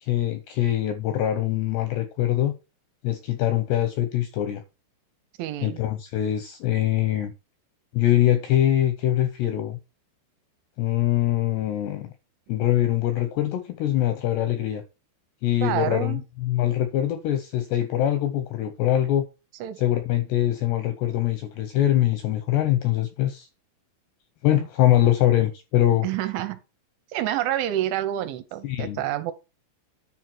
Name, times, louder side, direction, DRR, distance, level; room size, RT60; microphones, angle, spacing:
voice 1, 0.0-2.5 3.0-4.6 5.6-7.3 7.9-9.8 10.8-12.1 12.5-14.8 15.4-19.3 19.8-23.5 24.4-26.1 28.6-29.0, left 13 dB, 80° left, 2.4 m, -23 dB
voice 2, 5.4-5.8 15.6-16.2 19.6-19.8 24.5-24.6 26.0-26.6 27.1-29.3, right 13 dB, 80° right, 3.1 m, -28 dB
10.0 x 4.8 x 4.5 m
omnidirectional pair, 5.7 m